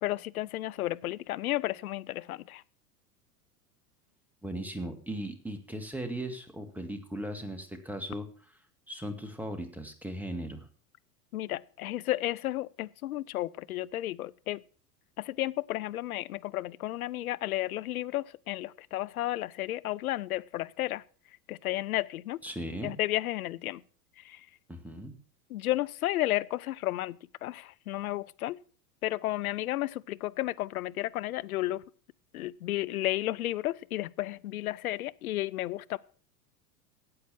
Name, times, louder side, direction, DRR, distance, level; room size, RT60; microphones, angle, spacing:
voice 1, 0.0-2.6 11.3-14.6 15.2-21.0 21.5-22.4 22.8-23.8 24.3-24.4 25.5-28.6 29.0-31.8 32.3-36.0, left 15 dB, 65° left, 0.7 m, -32 dB
voice 2, 4.4-8.3 8.9-10.7 22.4-22.9 24.7-25.2, right 1 dB, 5° right, 2.1 m, -37 dB
13.5 x 8.7 x 6.1 m
figure-of-eight pair, 85°, 47 cm